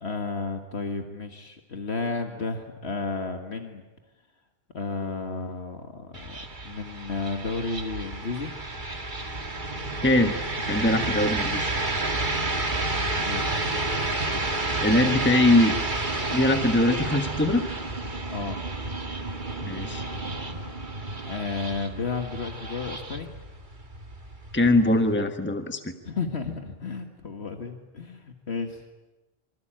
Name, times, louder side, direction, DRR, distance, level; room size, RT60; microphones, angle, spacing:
voice 1, 0.0-3.8 4.7-8.6 13.2-13.5 18.3-18.6 21.3-23.3 26.0-28.8, left 4 dB, 75° left, 5 dB, 2.1 m, -32 dB
sound 1, 6.1-25.1, right 2 dB, 45° right, 2.2 m, -30 dB
voice 2, 10.0-10.3 10.7-11.6 14.8-15.7 16.3-17.6 19.6-20.0 24.5-25.9, left 1 dB, 10° left, 7 dB, 1.4 m, -22 dB
26.5 x 25.0 x 9.0 m, 1.1 s
omnidirectional pair, 1.1 m